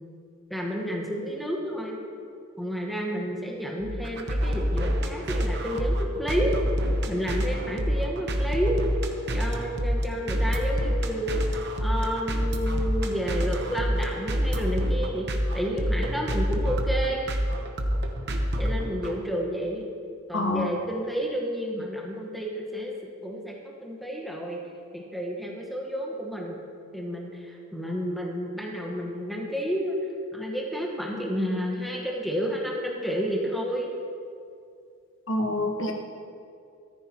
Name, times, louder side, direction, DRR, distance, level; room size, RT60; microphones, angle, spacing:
voice 1, 0.5-2.0 2.6-6.5 7.1-8.8 9.3-11.5 11.8-17.3 18.6-19.9 20.3-22.9 23.2-24.6 24.9-26.6 26.9-29.9 30.3-33.9, equal, ahead, -2 dB, 1.3 m, -30 dB
sound 1, 3.8-19.2, equal, 50° right, 1.0 m, -27 dB
voice 2, 20.3-20.7 35.3-35.9, left 2 dB, 60° left, 2 dB, 1.3 m, -26 dB
14.0 x 13.5 x 3.0 m, 2.4 s
head